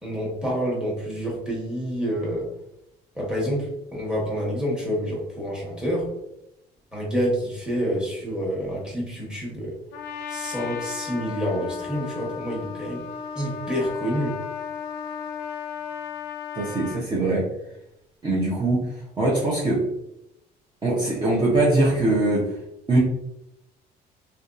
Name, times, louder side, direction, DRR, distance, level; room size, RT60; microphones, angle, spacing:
voice 1, 0.0-2.5 3.1-6.1 6.9-9.8 10.3-13.0 13.3-14.4, equal, 5° right, -5 dB, 1.1 m, -28 dB
Trumpet, 9.9-17.0, left 7 dB, 85° left, 0.4 m, -34 dB
voice 2, 16.6-17.5 18.2-18.9 19.2-19.9 20.8-22.5 22.9-23.0, right 2 dB, 25° right, -7 dB, 0.6 m, -22 dB
2.6 x 2.2 x 2.4 m, 0.82 s
cardioid pair, 110°, 17 cm